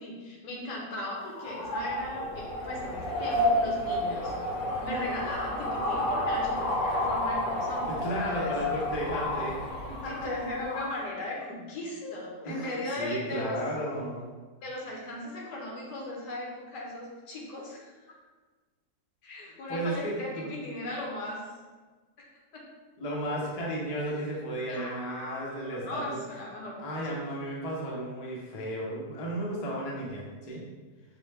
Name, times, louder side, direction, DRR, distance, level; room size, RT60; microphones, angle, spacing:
voice 1, 0.0-4.3 4.8-8.0 8.3-8.5 10.0-13.6 14.6-17.9 19.2-21.4 22.5-22.6 24.7-26.8, left 1 dB, 80° left, -3 dB, 1.5 m, -37 dB
sound 1, 1.2-11.0, left 1 dB, 65° left, 1.2 m, -31 dB
voice 2, 7.9-9.6 10.0-10.1 12.0-14.3 19.7-20.5 23.0-26.2 26.8-30.6, equal, 40° left, -4 dB, 0.5 m, -34 dB
5.0 x 2.2 x 3.3 m, 1.3 s
omnidirectional pair, 1.8 m